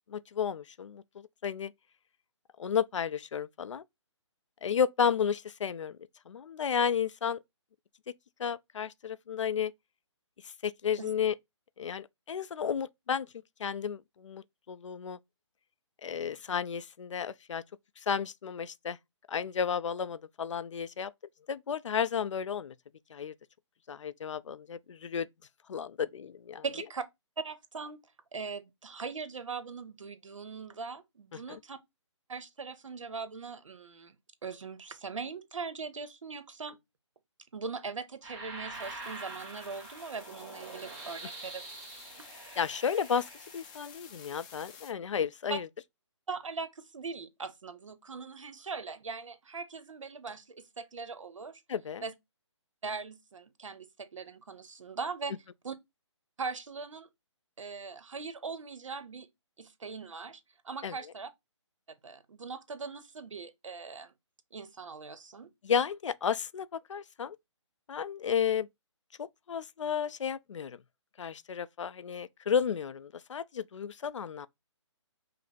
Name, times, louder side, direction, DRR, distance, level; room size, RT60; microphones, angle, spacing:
voice 1, 0.1-1.7 2.6-3.8 4.6-6.0 6.3-7.4 8.4-9.7 10.4-11.4 11.8-13.3 13.6-15.2 16.0-17.6 18.1-19.0 19.3-21.1 21.5-22.7 23.1-23.3 23.9-25.3 25.7-26.6 31.5-31.6 42.6-45.7 51.7-52.0 60.8-60.9 65.6-67.4 67.9-68.7 69.2-70.8 71.2-74.5, left 7 dB, 75° left, 0.4 m, -32 dB
voice 2, 26.6-27.0 27.4-28.0 28.3-31.8 32.3-36.8 37.5-41.6 42.2-42.3 45.5-45.6 46.3-51.6 52.0-52.1 52.8-55.8 56.4-57.1 57.6-59.3 59.6-60.4 60.6-61.3 62.0-64.1 64.5-65.5, right 4 dB, 85° right, 0.8 m, -40 dB
sound 1, 38.2-43.9, right 3 dB, 15° right, 0.8 m, -45 dB
sound 2, 38.7-44.9, left 6 dB, 15° left, 0.5 m, -53 dB
5.2 x 2.0 x 4.1 m
hypercardioid pair, 160°, 16 cm